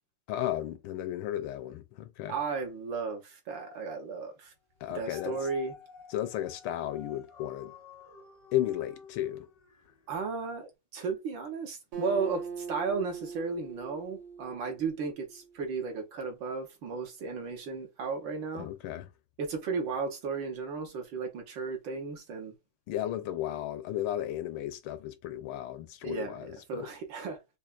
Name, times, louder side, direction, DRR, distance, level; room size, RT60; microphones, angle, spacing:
voice 1, 0.3-2.3 4.8-5.4 6.1-7.7 8.5-9.5 18.5-19.1 22.9-26.9, left 12 dB, 80° left, 1.4 m, -34 dB
voice 2, 2.3-4.5 4.9-5.7 10.1-18.7 19.4-22.5 26.0-27.4, right 5 dB, 65° right, 1.6 m, -35 dB
Dog, 4.7-10.0 10.6-10.7, left 6 dB, 45° left, 0.4 m, -51 dB
Acoustic guitar, 11.9-15.5, right 6 dB, 85° right, 2.3 m, -41 dB
5.5 x 2.2 x 2.4 m
omnidirectional pair, 2.4 m